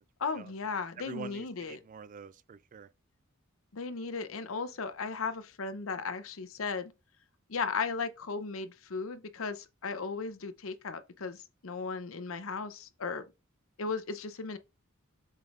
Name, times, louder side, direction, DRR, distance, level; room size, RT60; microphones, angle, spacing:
voice 1, 0.2-1.8 3.7-6.9 7.5-11.4 11.6-13.2 13.8-14.6, left 4 dB, 70° left, 0.7 m, -36 dB
voice 2, 1.0-2.9, right 5 dB, 40° right, 0.3 m, -46 dB
7.3 x 5.3 x 2.5 m
head